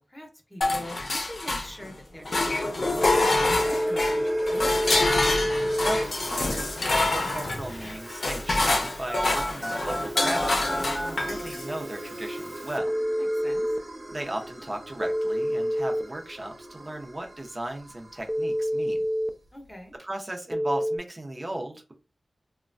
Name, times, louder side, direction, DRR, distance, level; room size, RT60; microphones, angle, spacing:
voice 1, 0.1-4.9 13.2-13.6 19.5-19.9, equal, 15° left, 2 dB, 0.8 m, -43 dB
sound 1, 0.6-1.9 2.3-11.7, left 2 dB, 70° left, 0.5 m, -26 dB
sound 2, 2.1-18.5, right 1 dB, 60° right, 1.1 m, -40 dB
Telephone, 3.0-13.8 15.0-16.0 18.3-19.3 20.5-21.0, equal, ahead, 0.3 m, -29 dB
voice 2, 5.8-12.9 14.1-19.0 20.0-21.9, right 1 dB, 35° right, 3 dB, 0.7 m, -36 dB
3.0 x 2.2 x 2.5 m, 0.31 s
wide cardioid pair, 60°, 0 cm